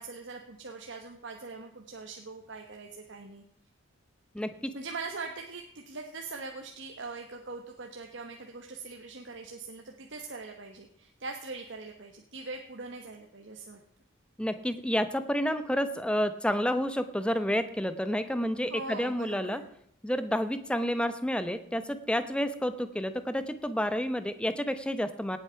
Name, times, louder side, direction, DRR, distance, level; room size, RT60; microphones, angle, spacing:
voice 1, 0.0-3.4 4.7-13.8 18.7-19.7, right 3 dB, 60° right, 3 dB, 1.2 m, -42 dB
voice 2, 4.3-4.7 14.4-19.6 20.0-25.4, equal, 5° left, 11 dB, 0.8 m, -30 dB
18.0 x 8.2 x 5.7 m, 0.72 s
head